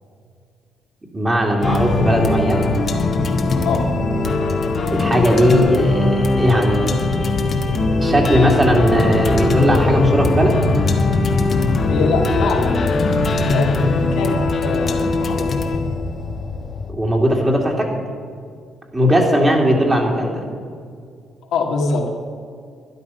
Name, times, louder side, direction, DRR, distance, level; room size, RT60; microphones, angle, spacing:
voice 1, 1.1-2.7 4.9-6.9 8.0-10.6 16.9-17.9 18.9-20.4, equal, 20° right, 0 dB, 2.9 m, -17 dB
sound 1, 1.6-16.9, left 3 dB, 45° left, 1.4 m, -20 dB
voice 2, 11.9-15.5 21.5-22.0, left 3 dB, 85° left, 0 dB, 2.3 m, -23 dB
12.5 x 11.0 x 5.8 m, 2.2 s
cardioid pair, 90°, 0 cm